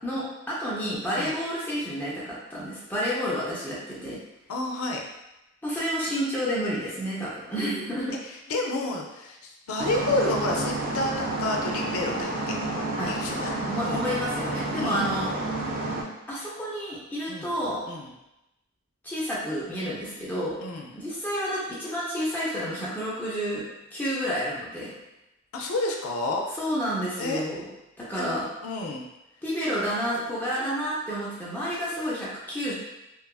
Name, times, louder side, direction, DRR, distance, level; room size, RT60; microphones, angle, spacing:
voice 1, 0.0-4.2 5.6-8.1 13.0-13.1 13.7-15.3 16.3-17.8 19.0-20.6 20.9-23.6 23.9-24.9 26.6-27.6 28.0-28.4 29.4-32.7, equal, 10° left, -8 dB, 0.6 m, -30 dB
voice 2, 4.5-5.0 8.5-12.6 13.1-13.6 13.8-14.1 14.8-15.1 17.3-17.5 17.9-18.1 20.6-20.9 25.5-26.4 27.2-27.4 28.2-29.1, left 2 dB, 90° left, 1 dB, 0.4 m, -30 dB
sound 1, 9.8-16.0, right 2 dB, 45° right, 0.4 m, -30 dB
2.8 x 2.4 x 2.3 m, 0.93 s
head